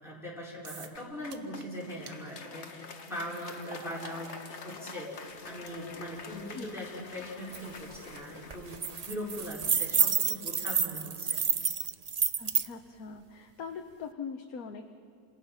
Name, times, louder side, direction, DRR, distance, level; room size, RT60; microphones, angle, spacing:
voice 1, 0.0-11.4, equal, ahead, -6 dB, 5.0 m, -41 dB
sound 1, 0.6-1.0 1.3-1.7 2.1-2.2 2.9-10.0, right 5 dB, 55° right, 1.6 m, -53 dB
Applause, 0.9-10.3, left 4 dB, 45° left, 1.4 m, -47 dB
sound 2, 7.5-7.6 7.9-8.2 8.5-12.7, right 6 dB, 70° right, 0.3 m, -29 dB
voice 2, 12.4-14.9, left 5 dB, 65° left, 4 dB, 1.4 m, -42 dB
30.0 x 27.0 x 5.7 m, 2.3 s
omnidirectional pair, 1.7 m